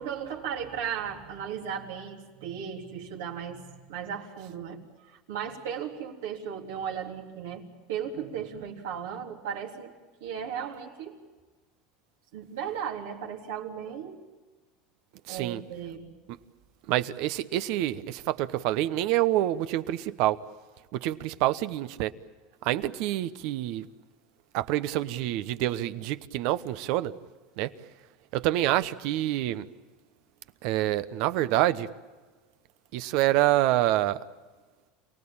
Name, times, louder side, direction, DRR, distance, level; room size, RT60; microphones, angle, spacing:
voice 1, 0.0-9.9 10.2-11.1 12.3-14.2 15.3-16.1, right 8 dB, 80° right, 0 dB, 3.7 m, -36 dB
voice 2, 15.3-15.6 16.9-20.4 20.9-22.1 22.6-23.9 24.5-27.1 27.6-27.7 28.3-29.7 30.6-31.9 32.9-34.2, right 14 dB, 65° right, 13 dB, 1.0 m, -27 dB
28.0 x 18.5 x 8.8 m, 1.3 s
supercardioid pair, 105°, 0 cm